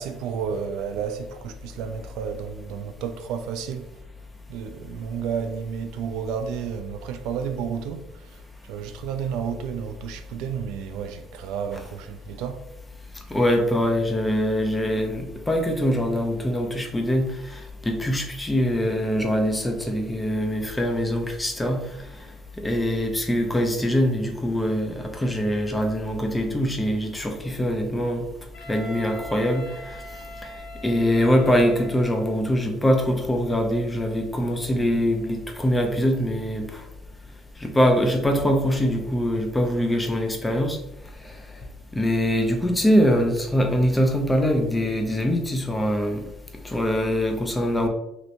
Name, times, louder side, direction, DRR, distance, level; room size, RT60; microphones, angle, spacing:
voice 1, 0.0-3.9 4.5-12.7, right 7 dB, 90° right, 0.4 m, -31 dB
voice 2, 13.3-21.8 22.6-28.2 28.7-29.7 30.8-36.8 37.6-40.8 42.0-46.2 46.6-47.9, equal, 10° left, 0.6 m, -23 dB
Wind instrument woodwind instrument, 28.5-32.4, right 1 dB, 90° left, 1.0 m, -41 dB
3.2 x 2.9 x 2.6 m
cardioid pair, 115°, 0 cm